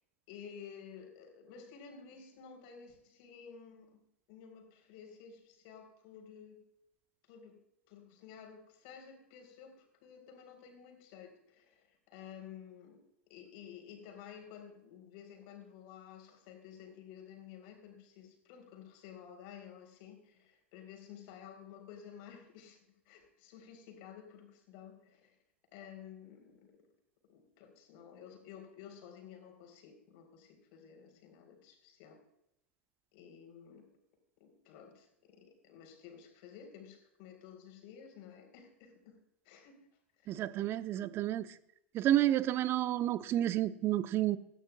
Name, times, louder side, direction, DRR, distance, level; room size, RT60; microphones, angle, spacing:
voice 1, 0.3-3.9 4.3-6.6 7.3-7.6 7.9-13.0 13.3-25.3 25.7-26.7 27.3-32.2 33.1-33.8 34.4-39.2 39.4-39.7 40.2-40.3, left 8 dB, 50° left, 4 dB, 4.0 m, -53 dB
voice 2, 40.3-41.6 41.9-44.4, right 13 dB, 35° right, 13 dB, 0.8 m, -30 dB
18.0 x 13.5 x 2.4 m, 0.80 s
figure-of-eight pair, 90°, 7 cm